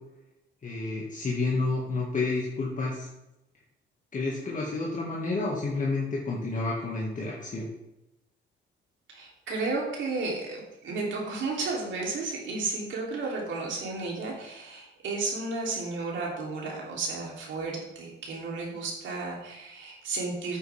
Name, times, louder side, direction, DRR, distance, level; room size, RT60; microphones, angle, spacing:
voice 1, 0.6-3.1 4.1-7.7, left 3 dB, 40° left, -4 dB, 2.0 m, -30 dB
voice 2, 9.1-20.6, right 3 dB, 70° right, -3 dB, 3.3 m, -33 dB
9.1 x 8.7 x 3.5 m, 0.92 s
cardioid pair, 90°, 20 cm